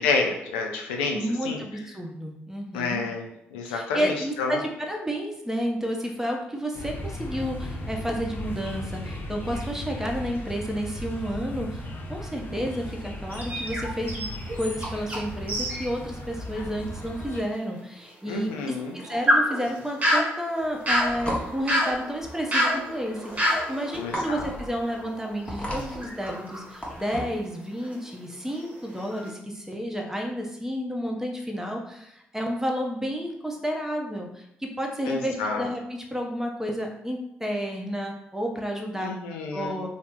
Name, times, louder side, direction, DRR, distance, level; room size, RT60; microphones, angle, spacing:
voice 1, 0.0-1.2 1.4-1.6 2.7-4.6 18.3-19.0 24.0-24.4 35.1-35.7 39.0-39.8, left 4 dB, 85° left, 2 dB, 0.4 m, -29 dB
voice 2, 1.1-3.0 3.6-11.8 12.1-14.3 14.6-39.1 39.5-39.9, equal, 10° right, 1 dB, 0.7 m, -31 dB
sound 1, 6.7-17.4, left 1 dB, 40° left, 0.6 m, -36 dB
sound 2, 13.3-15.2 15.5-15.9 16.3-16.4 17.0-17.1 18.7-25.3 25.8-27.3 27.8-28.1 28.5-29.3, equal, 25° right, 1.0 m, -28 dB
sound 3, 20.6-27.4, equal, 20° left, 1.0 m, -36 dB
2.7 x 2.0 x 3.5 m, 0.81 s
hypercardioid pair, 45°, 5 cm